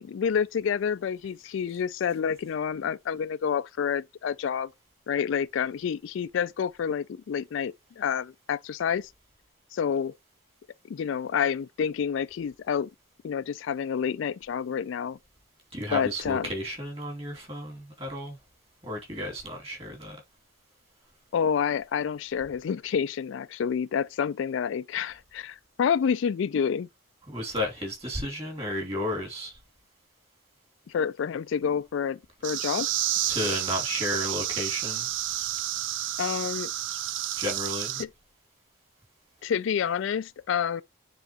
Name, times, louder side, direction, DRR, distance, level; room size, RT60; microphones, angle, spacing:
voice 1, 0.0-4.7 5.1-9.1 9.7-10.1 10.9-12.9 13.2-15.2 15.9-16.5 21.3-26.9 30.9-32.9 36.2-36.7 38.0-38.1 39.4-40.8, left 7 dB, 65° left, 0.3 m, -28 dB
voice 2, 15.7-18.4 18.8-20.2 27.3-29.6 33.3-35.1 37.4-38.0, left 1 dB, 30° right, 2.5 m, -33 dB
sound 1, 32.4-38.0, right 13 dB, 60° right, 0.4 m, -30 dB
9.2 x 3.8 x 2.9 m
head